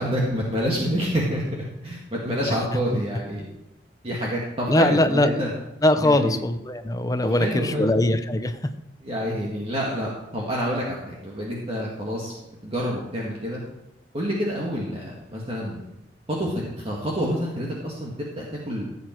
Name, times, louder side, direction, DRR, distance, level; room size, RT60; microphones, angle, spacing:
voice 1, 0.0-1.4 1.8-3.5 4.0-5.5 6.0-6.4 7.2-8.0 9.0-12.3 12.6-13.6 14.1-15.8 16.3-18.8, equal, 30° right, -3 dB, 2.0 m, -28 dB
voice 2, 4.7-5.5 5.8-8.6, left 1 dB, 20° left, 9 dB, 0.8 m, -21 dB
16.0 x 8.5 x 4.6 m, 0.88 s
head